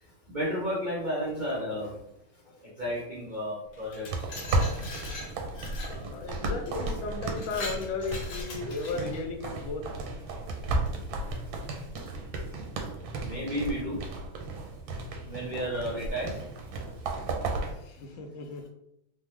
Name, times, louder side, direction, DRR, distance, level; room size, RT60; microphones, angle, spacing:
voice 1, 0.3-1.9 2.8-4.1 13.2-14.0 15.2-16.3, equal, 70° right, -6 dB, 0.4 m, -32 dB
Glass, 3.7-6.0 6.7-6.8 7.2-9.2, left 3 dB, 65° left, 1.0 m, -41 dB
sound 1, 4.1-17.7, right 2 dB, 90° right, 1.4 m, -34 dB
voice 2, 5.8-9.8 17.8-18.7, left 3 dB, 80° left, 3 dB, 1.3 m, -35 dB
3.4 x 2.1 x 3.0 m, 0.80 s
omnidirectional pair, 2.1 m